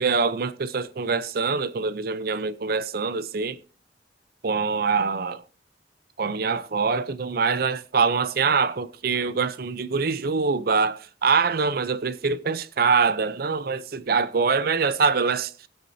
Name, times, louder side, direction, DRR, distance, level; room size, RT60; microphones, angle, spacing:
voice 1, 0.0-3.6 4.4-5.4 6.2-15.5, right 5 dB, 55° right, 0.6 m, -24 dB
20.0 x 8.0 x 2.7 m
head